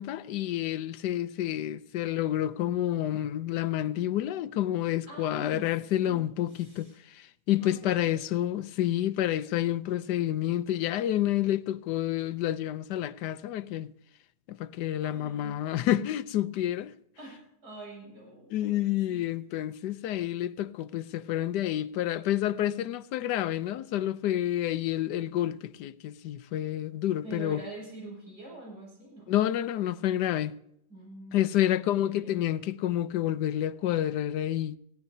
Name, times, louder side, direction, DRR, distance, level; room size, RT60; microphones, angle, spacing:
voice 1, 0.0-13.9 14.5-16.9 18.5-27.6 29.3-30.5 31.3-34.8, left 12 dB, 90° left, 1.3 m, -29 dB
voice 2, 5.1-5.6 6.0-6.2 6.5-7.0 7.5-8.2 15.0-16.1 17.2-19.2 27.2-29.3 30.9-32.5, right 2 dB, 75° right, 7.6 m, -45 dB
20.0 x 16.0 x 2.7 m
omnidirectional pair, 1.7 m